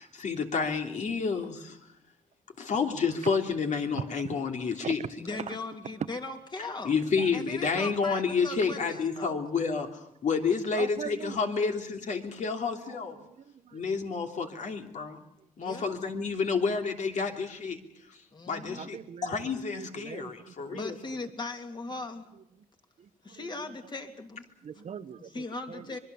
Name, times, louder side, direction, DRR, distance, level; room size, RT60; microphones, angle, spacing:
voice 1, 0.0-1.8 2.6-5.0 6.8-13.2 13.7-15.2 15.6-17.8 18.1-18.2 18.5-20.9, left 5 dB, 55° left, 3 dB, 3.1 m, -30 dB
voice 2, 3.9-4.4 4.8-5.1 5.5-5.6 7.1-7.3 10.7-11.4 12.9-13.8 14.6-14.7 15.8-16.0 18.8-20.8 23.0-23.5 24.6-25.8, right 7 dB, 50° right, 12 dB, 1.0 m, -41 dB
voice 3, 5.2-6.9 7.3-9.4 15.6-15.9 18.3-18.9 20.7-22.3 23.2-24.4 25.2-26.0, left 3 dB, 30° left, 4 dB, 3.0 m, -39 dB
25.0 x 22.5 x 7.0 m, 0.79 s
cardioid pair, 120°, 15 cm